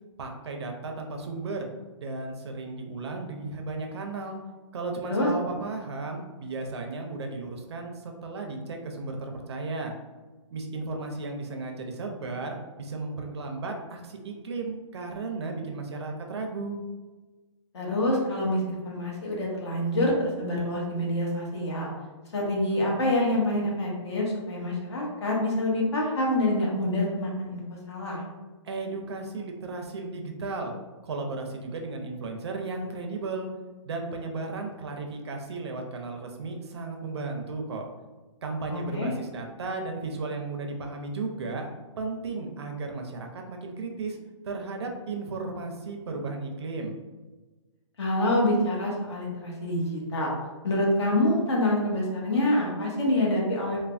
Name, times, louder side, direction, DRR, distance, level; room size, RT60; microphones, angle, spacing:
voice 1, 0.2-1.7 2.0-4.4 4.7-9.9 10.5-16.8 28.6-30.8 31.0-33.5 33.8-37.9 38.4-41.7 42.0-44.2 44.4-47.0, right 3 dB, 55° right, 3 dB, 0.5 m, -34 dB
voice 2, 17.7-21.9 22.3-28.2 38.7-39.1 48.0-50.3 50.6-53.8, left 1 dB, 60° left, -2 dB, 0.9 m, -26 dB
3.2 x 2.1 x 2.4 m, 1.2 s
hypercardioid pair, 170°, 16 cm